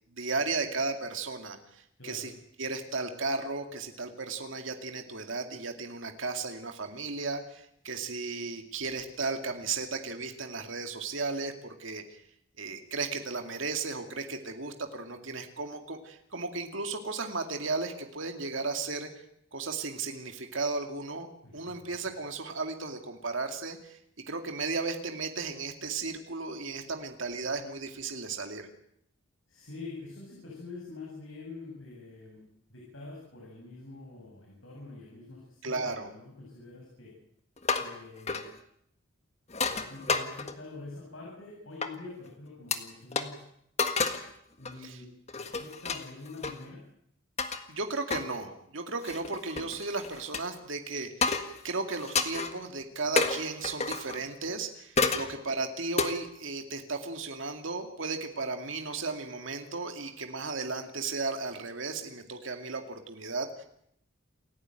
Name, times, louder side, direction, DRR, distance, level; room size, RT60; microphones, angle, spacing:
voice 1, 0.1-1.6 2.0-2.3 2.6-12.2 12.6-19.1 19.5-21.3 21.5-24.0 24.3-28.7 35.6-36.1 44.8-45.0 47.7-51.3 51.6-63.6, right 3 dB, 70° right, 5 dB, 2.4 m, -35 dB
voice 2, 2.0-2.3 21.4-21.8 29.5-32.4 32.7-37.1 37.8-38.4 39.7-43.4 44.6-45.1 45.4-46.8 55.1-55.2, left 3 dB, 70° left, -2 dB, 8.0 m, -45 dB
sound 1, 37.6-38.0 38.3-38.5 39.5-40.7 41.8-41.9 42.7-42.8 43.1-43.3 43.8-44.3 44.6-44.8 45.3-46.6 47.4-47.6 48.1-48.3 49.0-50.4 51.2-51.6 51.9-52.5 53.2-54.2 55.0-55.3 56.0-56.1, left 4 dB, 30° left, 1.6 m, -30 dB
28.5 x 15.5 x 9.1 m, 0.73 s
head